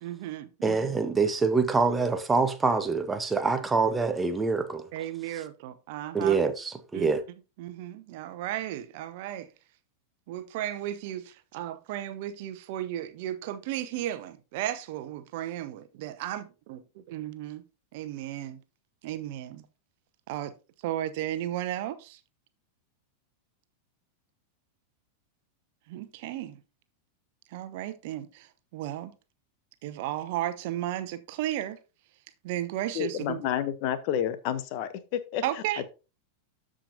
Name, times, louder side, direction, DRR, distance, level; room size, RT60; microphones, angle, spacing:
voice 1, 0.0-0.9 4.9-6.4 6.9-7.1 7.6-9.5 10.3-17.6 17.9-18.6 19.0-19.7 20.3-20.5 20.8-22.2 25.9-26.6 27.5-29.1 29.8-31.8 32.4-33.4 35.4-35.8, right 13 dB, 50° right, 0.9 m, -34 dB
voice 2, 0.6-4.8 6.1-7.2, right 4 dB, 10° right, 1.0 m, -25 dB
voice 3, 32.9-35.4, left 10 dB, 45° left, 0.8 m, -30 dB
13.0 x 5.0 x 2.7 m
figure-of-eight pair, 90°, 0 cm